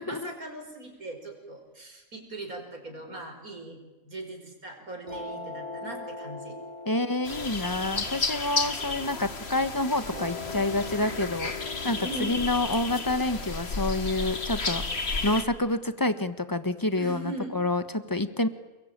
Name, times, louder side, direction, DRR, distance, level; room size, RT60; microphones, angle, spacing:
voice 1, 0.0-6.6 12.0-12.5 17.0-17.5, right 2 dB, 85° right, 4 dB, 5.7 m, -40 dB
sound 1, 5.1-9.5 10.1-15.1, left 3 dB, 30° right, 5.6 m, -41 dB
voice 2, 6.9-11.5 11.8-14.8 15.2-18.5, left 2 dB, 15° left, 12 dB, 1.4 m, -28 dB
sound 2, 7.2-15.4, left 4 dB, 50° left, 2.1 m, -33 dB
29.5 x 21.5 x 9.0 m, 1.2 s
omnidirectional pair, 1.5 m